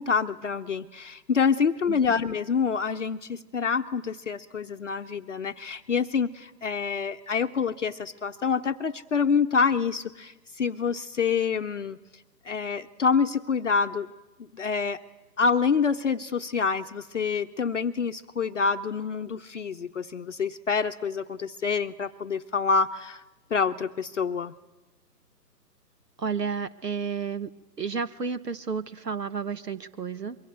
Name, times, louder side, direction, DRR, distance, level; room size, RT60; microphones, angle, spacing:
voice 1, 0.0-12.0 12.4-14.1 14.5-15.0 15.4-23.2 23.5-24.5, left 5 dB, 45° left, 7 dB, 0.8 m, -27 dB
voice 2, 26.2-27.5 27.8-30.4, right 5 dB, 75° right, 12 dB, 1.5 m, -31 dB
25.0 x 22.5 x 8.0 m, 1.1 s
figure-of-eight pair, 140°, 49 cm